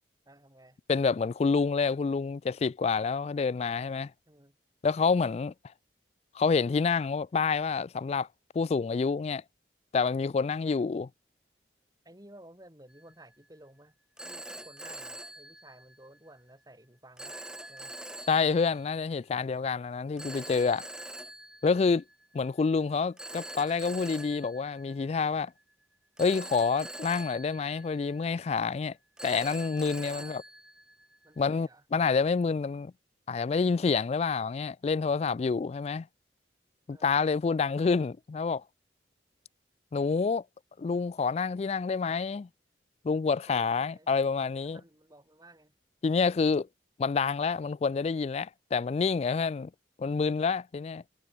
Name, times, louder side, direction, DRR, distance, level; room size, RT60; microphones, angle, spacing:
voice 1, 0.3-0.8 4.3-4.6 10.7-10.8 12.0-14.0 14.2-17.4 17.7-17.9 30.1-30.4 31.2-31.9 36.9-37.2 43.5-44.1 44.6-45.8, right 1 dB, 20° right, 6.9 m, -55 dB
voice 2, 0.9-4.1 4.8-5.5 6.3-8.3 8.5-9.4 9.9-11.1 18.3-20.9 21.6-22.0 22.3-25.5 26.2-28.9 29.2-30.4 31.4-32.9 33.3-36.1 36.9-38.6 39.9-40.4 40.8-42.5 43.0-44.8 46.0-46.7 47.0-49.7 50.0-51.0, left 5 dB, 35° left, 0.3 m, -28 dB
Telephone, 12.9-13.2 14.2-16.2 17.2-18.9 20.2-22.3 23.2-25.5 26.2-28.5 29.2-31.4, right 1 dB, 5° right, 1.9 m, -44 dB
head